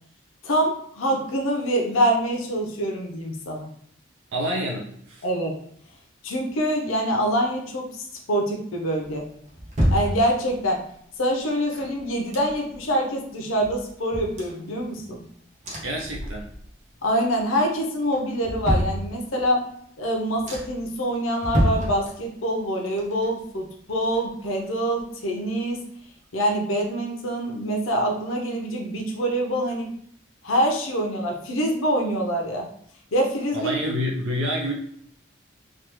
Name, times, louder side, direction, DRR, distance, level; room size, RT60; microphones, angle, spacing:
voice 1, 0.4-3.7 5.2-5.5 6.2-9.3 9.9-10.8 11.2-15.2 17.0-19.7 20.0-25.8 26.3-29.9 30.4-32.7 33.1-33.7, equal, 90° left, 1 dB, 0.7 m, -25 dB
voice 2, 4.3-5.2 15.8-16.5 33.5-34.7, equal, 80° right, 0 dB, 0.5 m, -27 dB
sound 1, 9.0-10.8 11.5-12.9 13.2-13.3 13.6-15.2 15.6-16.8 17.1-17.6 18.1-19.6 20.0-20.1 20.5-20.9 21.4-22.6 22.9-24.7 25.0-25.1, equal, 35° right, 0.7 m, -29 dB
3.3 x 2.4 x 3.0 m, 0.65 s
head